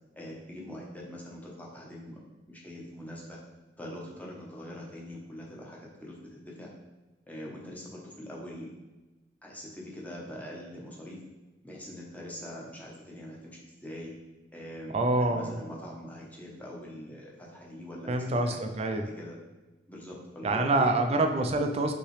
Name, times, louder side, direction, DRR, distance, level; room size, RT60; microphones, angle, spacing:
voice 1, 0.1-2.2 2.5-3.4 3.8-6.7 7.3-8.7 9.4-11.2 11.6-14.1 14.5-18.6 18.9-19.4 19.9-20.9, left 1 dB, 10° left, -3 dB, 0.8 m, -43 dB
voice 2, 14.9-15.5 18.1-19.1 20.4-21.9, right 2 dB, 35° right, 5 dB, 0.4 m, -26 dB
5.5 x 3.0 x 3.2 m, 1.1 s
head